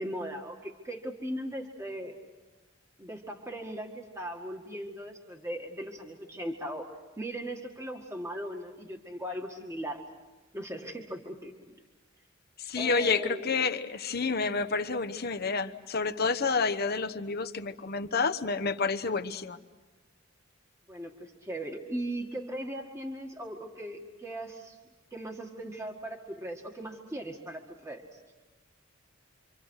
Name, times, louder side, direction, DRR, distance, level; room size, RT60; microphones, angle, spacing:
voice 1, 0.0-2.2 3.0-10.0 10.5-11.7 12.8-13.4 20.9-24.8 25.1-28.2, right 1 dB, 15° right, 1 dB, 1.9 m, -38 dB
voice 2, 12.6-19.6, left 4 dB, 50° left, 8 dB, 1.1 m, -29 dB
28.0 x 25.5 x 6.5 m, 1.2 s
head